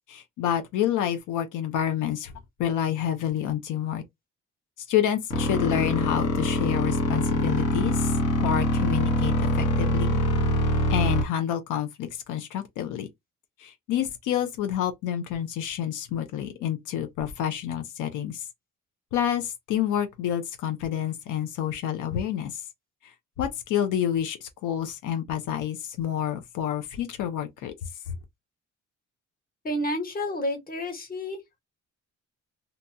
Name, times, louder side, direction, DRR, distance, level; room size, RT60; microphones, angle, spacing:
voice 1, 0.1-2.3 2.6-4.0 4.9-8.1 8.4-10.2 10.9-13.1 13.6-18.4 19.1-22.6 23.0-27.9, left 10 dB, 90° left, 0.6 m, -28 dB
sound 1, 5.3-11.2, left 1 dB, 55° left, 0.9 m, -24 dB
voice 2, 29.6-31.6, left 1 dB, 30° left, 1.2 m, -30 dB
2.9 x 2.2 x 2.6 m
cardioid pair, 90°, 30 cm